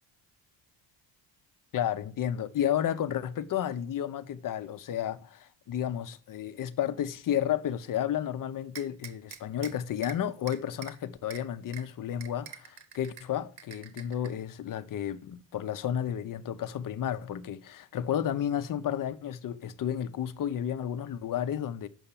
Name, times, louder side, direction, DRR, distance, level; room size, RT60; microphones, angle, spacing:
voice 1, 1.7-21.9, left 10 dB, 45° left, 0.8 m, -32 dB
sound 1, 8.7-9.7 10.0-10.2 10.5-10.9 11.3-11.4 11.7-11.8 12.2-13.2 13.6-14.3, right 8 dB, 55° right, 1.8 m, -44 dB
7.9 x 5.7 x 7.2 m
cardioid pair, 120°, 47 cm